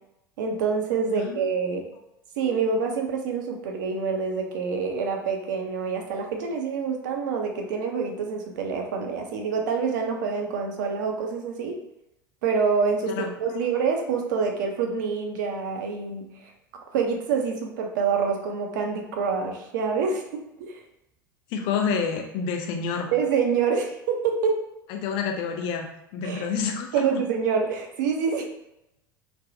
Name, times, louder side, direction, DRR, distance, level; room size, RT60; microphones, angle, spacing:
voice 1, 0.4-1.8 2.4-11.8 12.4-16.5 16.9-20.8 23.1-24.6 26.2-26.5 26.9-28.4, right 5 dB, 60° right, 2 dB, 0.6 m, -26 dB
voice 2, 1.1-1.5 13.1-13.3 21.5-23.1 24.9-25.9 26.1-27.0, left 6 dB, 45° left, 3 dB, 0.6 m, -28 dB
3.3 x 2.2 x 2.6 m, 0.86 s
figure-of-eight pair, 75°, 12 cm